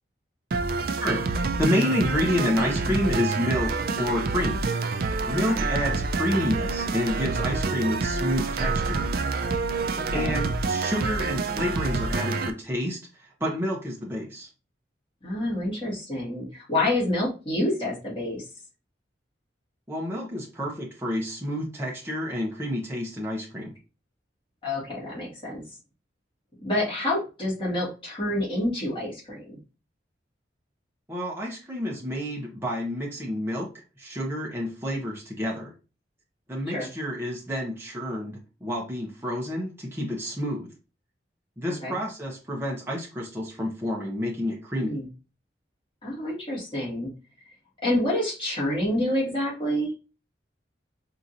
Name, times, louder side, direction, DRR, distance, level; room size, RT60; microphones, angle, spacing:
sound 1, 0.5-12.5, right 3 dB, 50° right, 0.4 m, -27 dB
voice 1, 1.0-4.6 5.3-9.1 10.1-14.5 19.9-23.7 31.1-33.7 34.0-35.7 36.5-40.7 41.6-45.0, equal, 15° right, -3 dB, 0.7 m, -29 dB
voice 2, 9.9-10.4 15.2-18.4 24.6-25.6 26.6-29.6 36.7-36.9 41.8-42.0 44.8-45.1 46.0-47.1 47.8-49.9, left 1 dB, 30° left, -6 dB, 1.9 m, -28 dB
4.9 x 2.8 x 2.6 m, 0.32 s
head